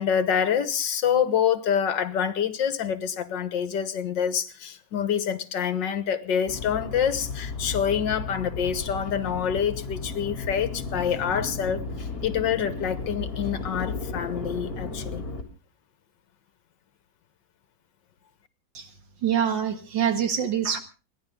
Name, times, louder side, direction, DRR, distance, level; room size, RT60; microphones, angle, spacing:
voice 1, 0.0-15.3, left 8 dB, 75° left, 12 dB, 1.8 m, -26 dB
sound 1, 6.5-15.4, left 3 dB, 50° left, 3.5 m, -34 dB
voice 2, 19.2-20.8, right 8 dB, 75° right, 7 dB, 2.3 m, -25 dB
29.5 x 10.5 x 3.7 m, 0.33 s
omnidirectional pair, 2.0 m